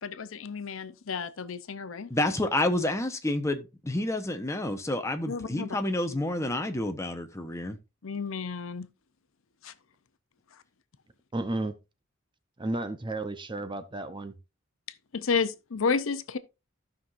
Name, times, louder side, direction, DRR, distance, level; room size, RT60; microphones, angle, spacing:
voice 1, 0.0-2.1 5.3-5.7 8.0-8.9 9.6-9.7 15.1-16.4, left 5 dB, 70° left, 0.7 m, -31 dB
voice 2, 2.1-7.8, left 1 dB, 15° left, 0.9 m, -29 dB
voice 3, 11.3-11.8 12.6-14.3, right 2 dB, 25° right, 0.7 m, -33 dB
15.5 x 5.8 x 2.5 m
head